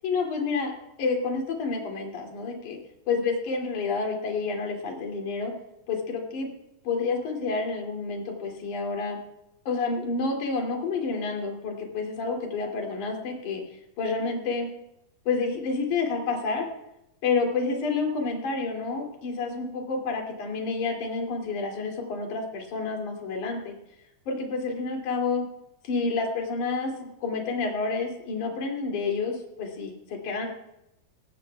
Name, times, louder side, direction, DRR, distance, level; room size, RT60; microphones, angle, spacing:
voice 1, 0.0-0.7 1.0-2.8 3.1-5.5 5.9-6.5 6.8-9.2 9.7-13.6 14.0-14.7 15.3-16.7 17.2-23.7 24.3-25.4 25.8-30.5, left 4 dB, 55° left, 2 dB, 4.0 m, -29 dB
18.0 x 16.5 x 2.3 m, 0.83 s
omnidirectional pair, 4.3 m